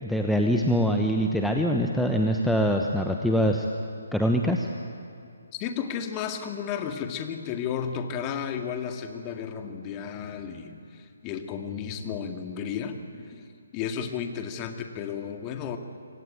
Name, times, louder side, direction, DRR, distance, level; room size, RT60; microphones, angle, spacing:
voice 1, 0.0-3.6 4.1-4.7, equal, ahead, 2 dB, 1.1 m, -24 dB
voice 2, 5.5-13.5 13.7-15.8, left 7 dB, 20° left, 5 dB, 2.1 m, -33 dB
27.0 x 23.5 x 9.0 m, 2.5 s
figure-of-eight pair, 140°, 0 cm